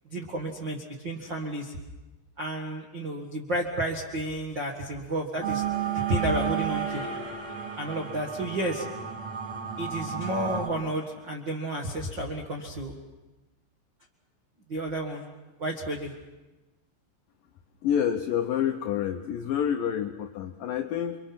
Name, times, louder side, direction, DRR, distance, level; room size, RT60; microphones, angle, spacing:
voice 1, 0.1-1.7 2.4-5.6 6.1-7.0 7.8-8.8 9.8-12.9 14.7-15.2 15.6-16.1, right 1 dB, 55° right, -2 dB, 1.2 m, -31 dB
sound 1, 5.4-10.7, right 8 dB, 40° right, 3.7 m, -32 dB
voice 2, 17.8-21.2, left 9 dB, 90° left, 6 dB, 1.9 m, -28 dB
29.5 x 24.5 x 5.8 m, 1.1 s
omnidirectional pair, 5.3 m